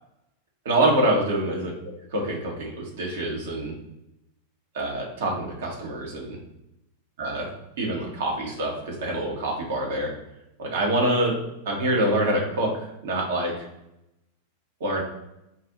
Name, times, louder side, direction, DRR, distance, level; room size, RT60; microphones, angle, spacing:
voice 1, 0.6-1.7 2.1-3.7 4.7-6.4 7.2-7.5 7.8-10.1 10.6-11.4 11.6-13.7 14.8-15.0, right 1 dB, 60° right, -1 dB, 1.0 m, -25 dB
4.3 x 2.5 x 3.6 m, 0.86 s
figure-of-eight pair, 90°, 0 cm